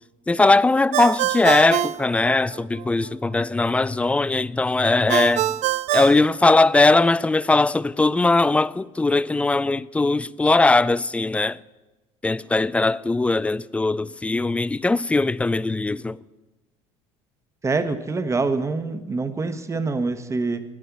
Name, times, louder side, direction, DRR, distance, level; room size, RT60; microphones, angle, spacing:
voice 1, 0.3-5.6 5.9-11.6 12.2-16.2, left 3 dB, 10° left, 0.3 m, -20 dB
Ringtone, 0.9-2.9 5.1-7.1, right 13 dB, 55° right, 0.4 m, -25 dB
voice 2, 17.6-20.6, right 3 dB, 20° right, 1.1 m, -25 dB
9.8 x 9.3 x 8.2 m
supercardioid pair, 95°, 14 cm